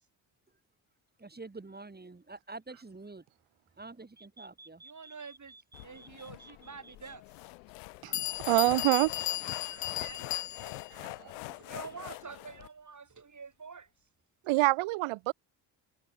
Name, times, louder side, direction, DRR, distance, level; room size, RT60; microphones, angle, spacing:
voice 1, 1.2-3.2 3.8-6.5, right 3 dB, 20° right, 2.7 m, -48 dB
voice 2, 4.8-5.6 5.8-7.2 9.4-10.9 11.4-13.9, right 5 dB, 35° right, 7.4 m, -48 dB
sound 1, 5.7-12.7, left 33 dB, 90° left, 7.1 m, -44 dB
Bell, 6.9-7.0 7.7-7.8 8.1-10.9, left 13 dB, 60° left, 1.6 m, -35 dB
voice 3, 8.0-9.1 9.7-10.1 10.9-11.3 14.4-15.3, right 20 dB, 80° right, 3.0 m, -28 dB
hypercardioid pair, 55°, 48 cm